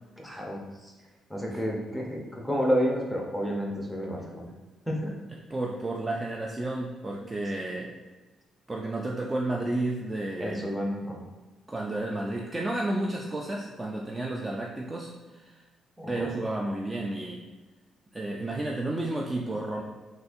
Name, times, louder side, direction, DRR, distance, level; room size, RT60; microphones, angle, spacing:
voice 1, 0.2-0.9 1.3-4.5 4.9-5.1 7.2-7.3 10.4-11.2 16.0-16.3, equal, ahead, -1 dB, 0.7 m, -30 dB
voice 2, 5.5-8.0 8.7-10.7 11.7-15.6 16.1-17.4 18.1-19.8, right 2 dB, 20° right, -1 dB, 0.4 m, -32 dB
3.9 x 2.4 x 2.6 m, 1.2 s
cardioid pair, 90°, 0 cm